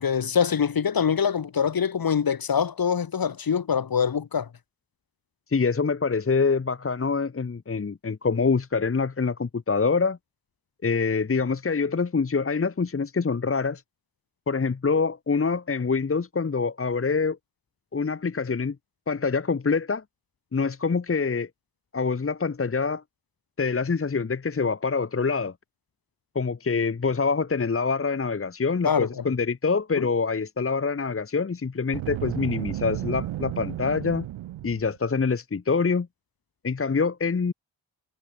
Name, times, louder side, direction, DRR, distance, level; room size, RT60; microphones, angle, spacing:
voice 1, 0.0-4.5 28.8-29.2 30.0-30.1, left 7 dB, 50° left, 3.9 m, -24 dB
voice 2, 5.5-10.2 10.8-13.8 14.5-17.4 17.9-18.8 19.1-20.0 20.5-21.5 21.9-23.0 23.6-25.5 26.4-34.3 34.6-36.1 36.6-37.5, left 4 dB, 30° left, 1.9 m, -25 dB
Boom, 31.9-35.0, right 14 dB, 85° right, 4.7 m, -33 dB
supercardioid pair, 65°, 45 cm